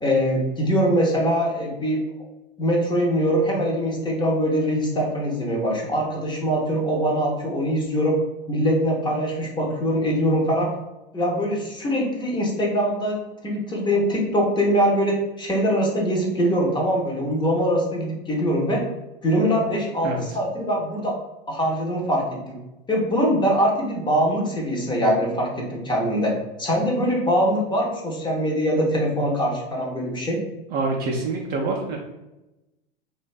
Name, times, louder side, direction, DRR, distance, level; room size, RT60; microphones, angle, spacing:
voice 1, 0.0-2.0 2.6-8.2 8.5-10.7 11.1-18.8 19.2-21.2 21.5-22.6 22.9-26.3 26.6-30.4, equal, 15° left, -1 dB, 0.6 m, -23 dB
voice 2, 30.7-32.0, right 3 dB, 35° right, -1 dB, 0.4 m, -26 dB
2.5 x 2.2 x 2.3 m, 0.99 s
hypercardioid pair, 100°, 30 cm